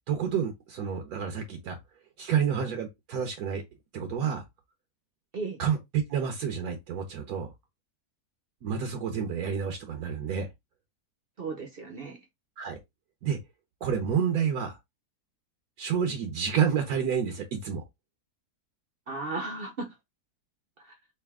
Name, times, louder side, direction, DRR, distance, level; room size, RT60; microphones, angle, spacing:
voice 1, 0.1-1.8 2.2-3.6 3.9-4.4 5.6-5.8 6.1-7.5 8.6-10.5 12.6-12.8 13.2-13.4 13.8-14.8 15.8-17.8, right 7 dB, 75° right, 1.2 m, -29 dB
voice 2, 11.4-12.2 19.1-19.9 20.8-21.0, right 3 dB, 50° right, 0.8 m, -35 dB
3.4 x 2.7 x 3.5 m
omnidirectional pair, 1.7 m